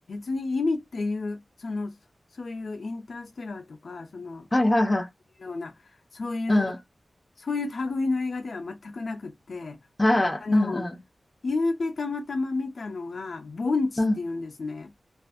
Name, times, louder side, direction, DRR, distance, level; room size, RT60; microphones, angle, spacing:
voice 1, 0.1-1.9 2.3-4.5 5.4-6.6 7.4-9.8 10.4-10.8 11.4-14.9, left 3 dB, 75° left, 0.4 m, -31 dB
voice 2, 4.5-5.1 6.5-6.8 10.0-11.0 14.0-14.2, left 1 dB, 20° left, 0.6 m, -22 dB
2.4 x 2.3 x 2.5 m
wide cardioid pair, 105°, 0 cm